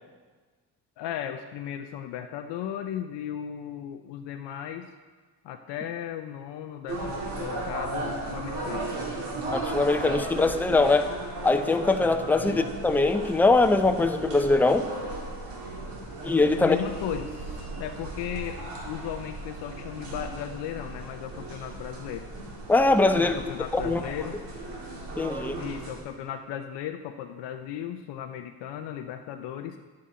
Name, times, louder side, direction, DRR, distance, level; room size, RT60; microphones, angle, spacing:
voice 1, 1.0-4.9 5.4-8.9 12.4-12.7 16.6-22.3 23.2-24.4 25.6-29.8, left 10 dB, 90° left, 5 dB, 0.6 m, -36 dB
sound 1, 6.9-26.0, right 2 dB, 80° right, 2.1 m, -36 dB
voice 2, 9.5-11.2 11.4-14.9 16.2-16.8 22.7-23.4 23.7-24.0 25.2-25.6, left 3 dB, 5° left, 7 dB, 0.4 m, -22 dB
9.5 x 7.3 x 3.7 m, 1.4 s
cardioid pair, 90°, 41 cm